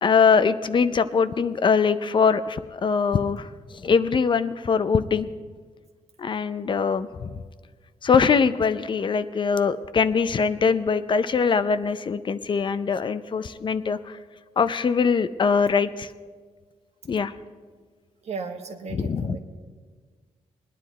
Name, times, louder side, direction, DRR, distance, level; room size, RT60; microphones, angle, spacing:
voice 1, 0.0-3.5 3.8-5.3 6.2-7.4 8.0-14.2 14.6-16.1 17.1-17.3 18.9-19.4, left 5 dB, 45° left, 12 dB, 0.5 m, -22 dB
voice 2, 18.2-19.4, right 5 dB, 65° right, 4 dB, 1.4 m, -35 dB
20.0 x 9.9 x 4.1 m, 1.6 s
cardioid pair, 95°, 12 cm